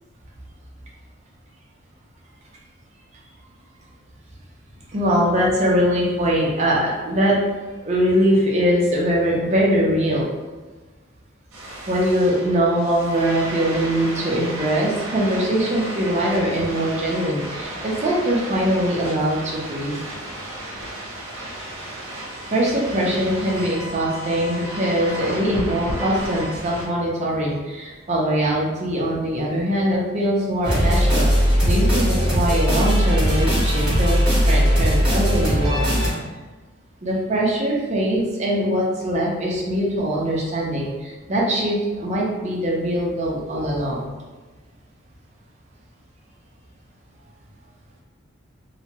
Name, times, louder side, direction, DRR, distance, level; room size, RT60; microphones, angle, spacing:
voice 1, 4.9-7.4 7.8-10.3 11.9-20.0 22.5-35.9 37.0-44.1, equal, 35° right, -4 dB, 0.6 m, -22 dB
sound 1, 11.5-26.9, right 1 dB, 85° right, 0.7 m, -33 dB
sound 2, 30.6-36.1, equal, 5° right, 1.2 m, -19 dB
2.9 x 2.2 x 2.8 m, 1.3 s
head